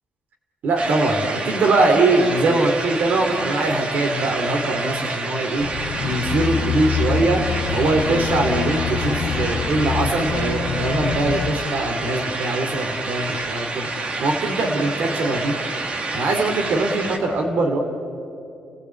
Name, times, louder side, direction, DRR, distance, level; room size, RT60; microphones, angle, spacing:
voice 1, 0.6-5.7 6.0-13.9 14.2-15.5 16.1-17.8, right 2 dB, 65° right, 3 dB, 2.9 m, -22 dB
sound 1, 0.8-17.2, right 3 dB, 45° right, 2.2 m, -28 dB
sound 2, 5.6-11.6, left 7 dB, 65° left, 0.9 m, -26 dB
29.5 x 16.0 x 8.4 m, 2.6 s
cardioid pair, 105°, 3 cm